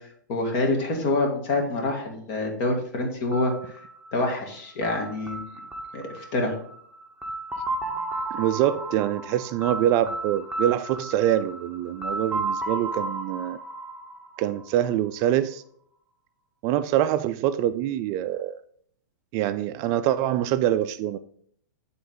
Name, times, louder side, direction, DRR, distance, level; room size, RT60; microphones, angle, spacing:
voice 1, 0.3-3.8 4.1-5.5 5.9-6.5, left 2 dB, 45° left, 1 dB, 2.2 m, -26 dB
sound 1, 3.3-15.1, right 2 dB, 10° right, 1.0 m, -34 dB
voice 2, 8.3-13.6 14.4-15.6 16.6-18.6 19.3-21.2, right 12 dB, 35° right, 12 dB, 0.3 m, -25 dB
10.0 x 4.0 x 3.9 m, 0.65 s
hypercardioid pair, 125°, 10 cm